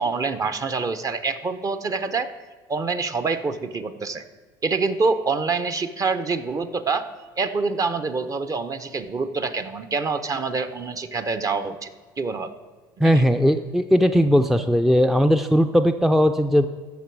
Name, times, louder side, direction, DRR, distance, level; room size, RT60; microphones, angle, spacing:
voice 1, 0.0-2.3 2.7-4.2 4.6-7.1 7.4-11.9 12.2-12.5 13.0-13.2, right 4 dB, 30° right, 10 dB, 0.8 m, -26 dB
voice 2, 13.0-16.7, equal, ahead, 8 dB, 0.5 m, -18 dB
15.0 x 6.0 x 4.7 m, 1.5 s
hypercardioid pair, 70°, 11 cm